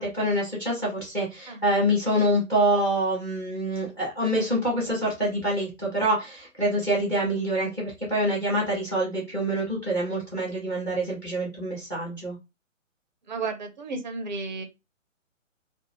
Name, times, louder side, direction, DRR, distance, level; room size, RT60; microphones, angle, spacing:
voice 1, 0.0-12.4, right 1 dB, 5° left, -3 dB, 0.7 m, -26 dB
voice 2, 13.3-14.6, right 4 dB, 35° right, 6 dB, 0.5 m, -33 dB
2.5 x 2.1 x 2.9 m, 0.25 s
figure-of-eight pair, 130°, 39 cm